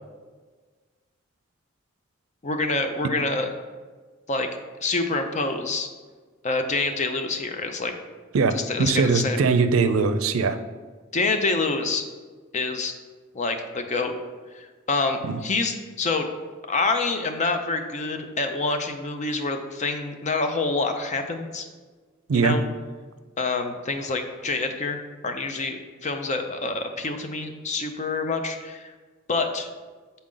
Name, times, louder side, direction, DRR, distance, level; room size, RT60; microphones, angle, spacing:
voice 1, 2.4-3.5 4.3-4.5 4.8-5.9 6.4-7.9 8.5-9.4 11.1-12.1 12.5-13.0 13.3-14.1 14.5-16.3 16.7-21.7 22.3-22.6 23.4-28.9 29.3-29.7, left 3 dB, 35° left, 6 dB, 0.6 m, -27 dB
voice 2, 8.3-10.6 15.2-15.4 22.3-22.6, right 4 dB, 85° right, 9 dB, 0.5 m, -21 dB
7.4 x 4.2 x 3.8 m, 1.4 s
head